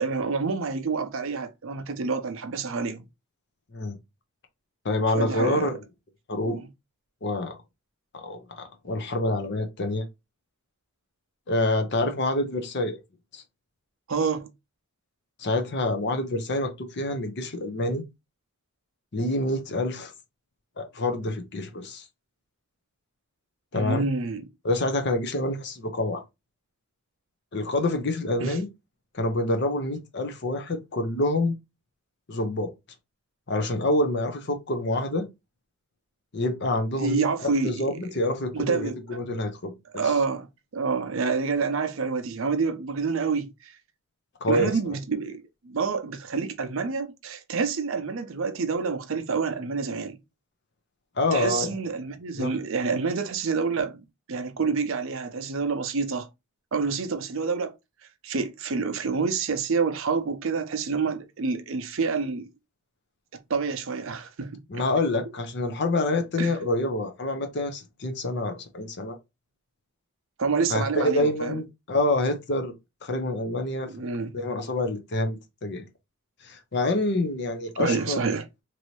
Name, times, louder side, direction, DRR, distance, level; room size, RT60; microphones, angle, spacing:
voice 1, 0.0-3.0 5.1-5.8 6.5-6.7 14.1-14.5 23.7-24.5 28.4-28.6 37.0-38.0 38.5-39.0 39.9-40.5 40.7-43.8 44.5-50.2 51.3-56.3 56.7-57.7 58.2-62.5 63.5-64.8 66.4-66.5 70.4-71.6 73.9-74.3 77.8-78.4, right 4 dB, 60° right, 0.5 m, -28 dB
voice 2, 4.8-5.8 6.3-6.6 7.2-7.6 8.1-10.0 11.5-13.0 13.3-13.4 15.4-18.0 19.1-20.1 20.8-22.0 23.7-24.1 24.6-26.2 27.5-28.7 29.1-31.6 32.3-32.7 33.5-35.3 36.3-37.3 37.6-39.7 44.4-44.7 51.2-51.7 52.4-52.5 64.7-69.2 70.7-72.7 73.0-73.9 74.3-75.8 76.4-78.2, left 2 dB, 50° left, 0.6 m, -27 dB
3.1 x 2.7 x 3.0 m
head